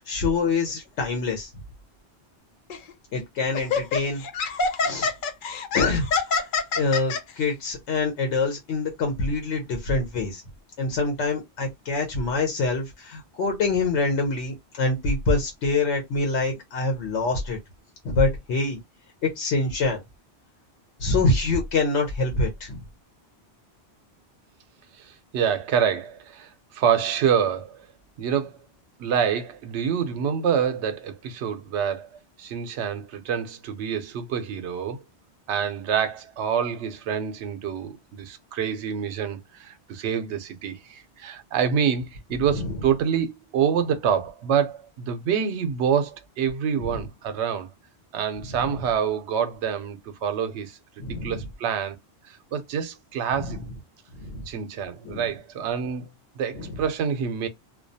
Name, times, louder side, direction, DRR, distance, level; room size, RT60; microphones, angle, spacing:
voice 1, 0.0-1.5 3.1-4.2 4.8-5.1 5.7-6.0 6.8-10.4 10.8-17.6 18.0-18.8 19.2-20.0 21.0-22.8 42.5-42.7 51.0-51.4 53.4-53.6 54.2-54.4 55.0-55.2 56.5-56.8, left 3 dB, 85° left, 1.0 m, -25 dB
Laughter, 2.7-2.9 3.5-7.2, left 4 dB, 60° left, 0.6 m, -25 dB
voice 2, 25.0-27.9 28.2-28.6 29.0-35.0 35.5-47.7 48.1-52.0 52.3-53.6 54.5-56.1 56.4-57.5, right 7 dB, 85° right, 0.9 m, -27 dB
2.3 x 2.2 x 2.6 m
omnidirectional pair, 1.1 m